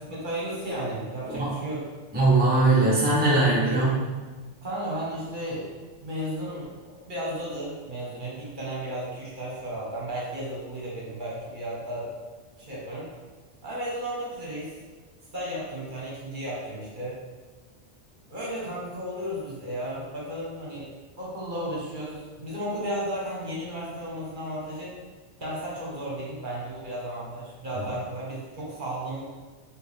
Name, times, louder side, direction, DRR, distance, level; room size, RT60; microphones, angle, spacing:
voice 1, 0.0-1.8 3.6-3.8 4.6-5.7 6.0-12.1 12.6-13.1 13.6-14.7 15.3-17.1 18.3-20.9 21.2-24.9 25.4-29.2, right 1 dB, 45° right, -6 dB, 1.1 m, -34 dB
voice 2, 1.3-1.6 2.1-4.0 27.7-27.9, right 2 dB, 10° right, -7 dB, 0.7 m, -21 dB
4.5 x 2.5 x 3.3 m, 1.4 s
omnidirectional pair, 1.2 m